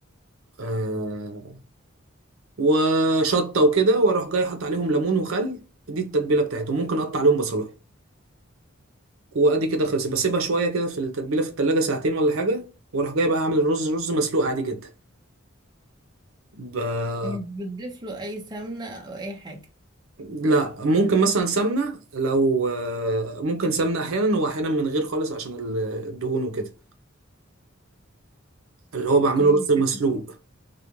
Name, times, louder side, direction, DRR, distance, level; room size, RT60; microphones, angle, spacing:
voice 1, 0.6-1.6 2.6-5.6 5.9-7.7 9.3-12.6 12.9-14.8 16.5-17.4 20.2-26.7 28.9-30.2, right 2 dB, 75° right, 0.6 m, -23 dB
voice 2, 17.2-19.7 29.4-30.1, equal, 20° right, 0.5 m, -35 dB
2.4 x 2.1 x 2.9 m
head